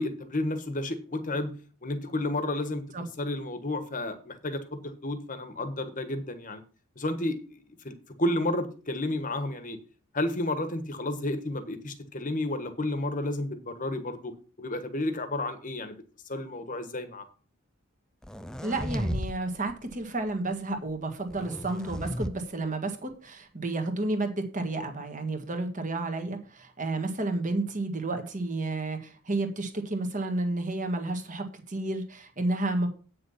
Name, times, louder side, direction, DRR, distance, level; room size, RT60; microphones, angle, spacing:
voice 1, 0.0-1.5 1.8-2.8 3.2-6.6 7.0-9.8 10.1-16.0 16.3-17.2, left 1 dB, 35° left, 9 dB, 1.3 m, -31 dB
sound 1, 18.2-19.3 19.7-20.0 21.3-22.3, equal, 5° left, 0.4 m, -34 dB
voice 2, 18.6-32.9, right 2 dB, 35° right, 5 dB, 1.6 m, -31 dB
8.7 x 6.6 x 5.6 m, 0.38 s
head